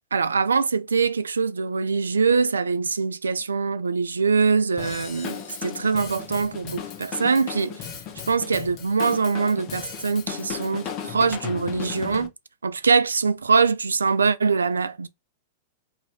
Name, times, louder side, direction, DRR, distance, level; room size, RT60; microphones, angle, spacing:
voice 1, 0.1-7.9 8.3-12.3 12.6-15.1, right 5 dB, 80° right, 0.3 m, -23 dB
Drum kit / Drum, 4.8-12.3, left 8 dB, 40° left, 0.8 m, -36 dB
2.8 x 2.5 x 3.1 m
figure-of-eight pair, 100°, 0 cm